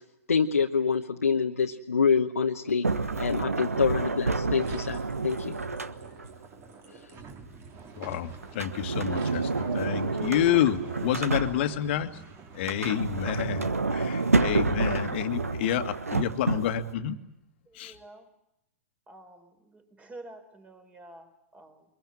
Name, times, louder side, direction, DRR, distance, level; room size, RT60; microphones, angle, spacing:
voice 1, 0.3-2.9 3.2-5.6 6.9-7.1, left 5 dB, 80° left, 1 dB, 1.2 m, -26 dB
Sliding door, 2.8-6.4 8.4-12.0 12.5-16.9, right 3 dB, 85° right, 1.2 m, -29 dB
sound 1, 4.6-13.3, right 4 dB, 30° right, 3.2 m, -45 dB
voice 2, 8.0-12.1 12.5-17.2 17.7-18.0, left 10 dB, 50° left, 8 dB, 1.8 m, -29 dB
voice 3, 17.8-18.3 19.1-21.8, right 2 dB, 15° right, 7 dB, 4.1 m, -49 dB
24.0 x 22.5 x 8.8 m, 0.87 s
figure-of-eight pair, 110°, 8 cm